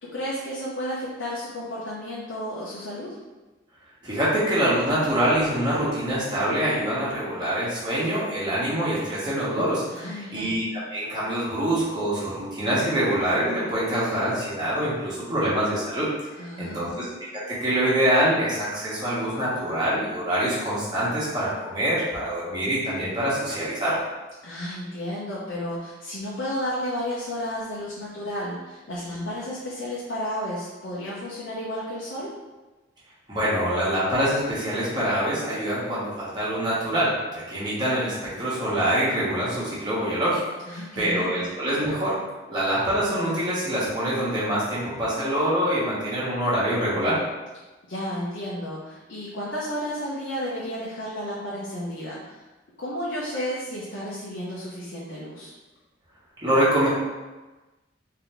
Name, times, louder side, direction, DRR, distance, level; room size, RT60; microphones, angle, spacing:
voice 1, 0.0-3.2 9.9-10.5 16.4-17.0 24.4-32.3 40.6-41.4 47.9-52.4 52.8-55.5, equal, 70° left, -7 dB, 0.8 m, -32 dB
voice 2, 4.0-10.6 10.9-16.1 16.6-17.1 17.5-24.0 33.3-40.4 40.7-42.2 42.5-47.2 56.4-56.9, right 1 dB, 20° right, -9 dB, 1.3 m, -25 dB
3.9 x 2.8 x 3.4 m, 1.2 s
head